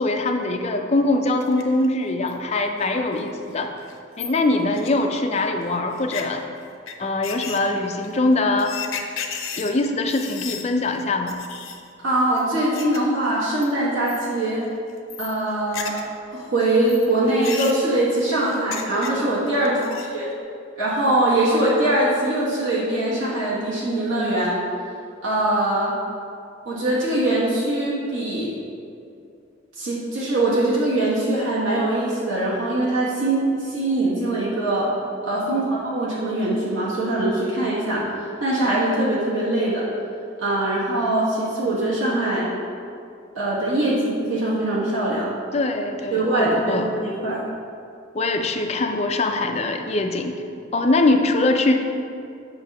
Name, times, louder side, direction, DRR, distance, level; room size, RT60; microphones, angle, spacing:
voice 1, 0.0-3.7 4.2-6.4 7.0-8.8 9.6-11.4 19.7-20.0 35.5-35.7 45.5-46.9 48.1-50.4 50.7-51.7, left 2 dB, 30° left, 4 dB, 0.4 m, -22 dB
sound 1, 1.4-1.9 2.3-2.4 2.8-2.9 3.2-3.3 3.5-3.6 3.8-5.4 6.0-6.2 6.9-7.0 7.2-10.6 11.0-11.1 11.3-11.8 12.3-13.0 13.2-13.7 14.1-14.4 14.7-16.1 16.4-19.4 19.7-20.2, left 7 dB, 80° left, 0.6 m, -34 dB
voice 2, 12.0-14.6 15.2-16.0 16.3-20.3 20.7-24.6 25.2-25.9 26.6-28.5 29.8-34.9 35.2-38.0 38.4-39.8 40.4-42.5 43.3-45.3 46.1-47.4, right 1 dB, 80° right, -9 dB, 1.6 m, -22 dB
7.7 x 2.7 x 5.9 m, 2.5 s
head